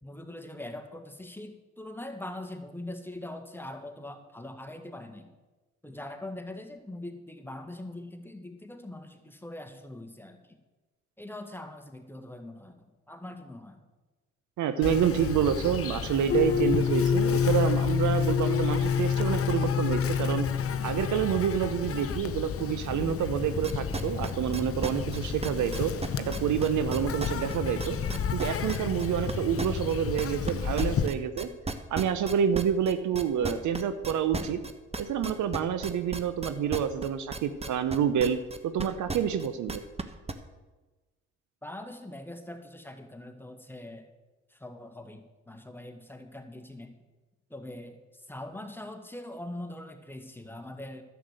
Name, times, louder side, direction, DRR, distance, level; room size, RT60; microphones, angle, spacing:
voice 1, 0.0-5.3 5.8-10.6 11.2-13.8 41.6-44.1 44.5-47.0 47.5-51.0, left 1 dB, 5° left, 5 dB, 1.7 m, -42 dB
voice 2, 14.6-20.5 20.8-25.9 26.2-28.0 28.3-31.5 31.9-34.6 35.0-38.4 38.6-39.8, right 8 dB, 60° right, 11 dB, 0.9 m, -28 dB
Insect, 14.8-31.1, left 7 dB, 40° left, 0.9 m, -33 dB
sound 1, 16.3-21.5, left 7 dB, 25° left, 0.3 m, -26 dB
sound 2, 23.6-30.5 30.8-40.3, right 3 dB, 20° right, 1.1 m, -35 dB
11.0 x 8.3 x 6.5 m, 1.2 s
hypercardioid pair, 55°, 33 cm